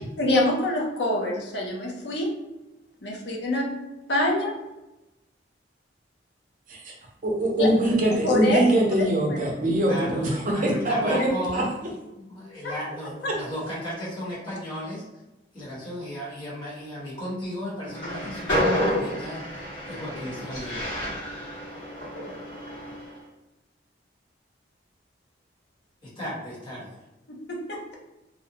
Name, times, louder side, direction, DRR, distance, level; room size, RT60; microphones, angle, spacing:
voice 1, 0.2-2.3 3.0-3.6 4.1-4.5 7.6-7.7 8.2-8.6 9.0-9.4 11.1-11.2 12.6-12.7 27.3-27.9, left 1 dB, 65° left, -1 dB, 0.5 m, -26 dB
voice 2, 7.2-11.6, right 1 dB, 45° right, -1 dB, 0.6 m, -23 dB
voice 3, 9.9-15.0 15.5-20.9 26.0-27.0, equal, 25° left, -9 dB, 1.0 m, -35 dB
Train, 17.9-23.1, equal, 85° left, 1.1 m, -29 dB
2.5 x 2.1 x 2.7 m, 0.97 s
head